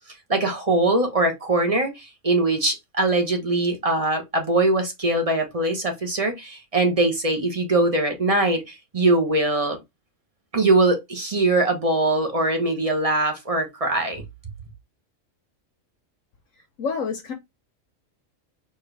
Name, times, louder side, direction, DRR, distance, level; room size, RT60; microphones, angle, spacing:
voice 1, 0.3-9.8 10.5-14.2, right 2 dB, 30° right, 1.1 m, -22 dB
voice 2, 16.8-17.3, left 5 dB, 80° left, 1.3 m, -27 dB
4.5 x 3.0 x 3.3 m
omnidirectional pair, 1.3 m